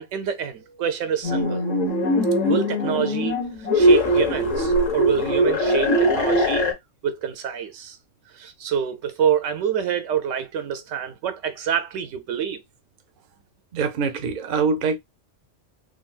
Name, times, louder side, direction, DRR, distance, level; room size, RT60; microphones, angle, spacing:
voice 1, 0.0-1.6 2.4-3.4 3.7-6.7 7.0-8.0 8.3-12.6, right 8 dB, 80° right, 0.9 m, -27 dB
sound 1, 1.2-6.7, equal, 80° left, 1.6 m, -21 dB
voice 2, 13.7-15.0, right 5 dB, 50° right, 0.6 m, -24 dB
3.8 x 2.2 x 2.3 m
omnidirectional pair, 1.3 m